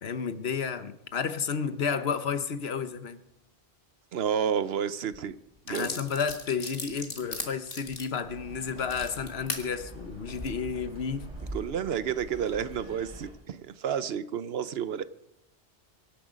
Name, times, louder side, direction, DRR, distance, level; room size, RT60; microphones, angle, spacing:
voice 1, 0.0-3.2 5.7-11.3, left 6 dB, 70° left, 11 dB, 1.2 m, -31 dB
voice 2, 4.1-5.3 5.7-6.0 11.5-15.0, right 8 dB, 70° right, 15 dB, 0.9 m, -30 dB
sound 1, 5.1-5.2 5.7-9.6 10.2-10.5, left 3 dB, 55° left, 2.1 m, -38 dB
sound 2, 8.3-13.3, right 1 dB, 35° right, 3.8 m, -44 dB
24.0 x 10.0 x 5.2 m, 0.85 s
omnidirectional pair, 1.1 m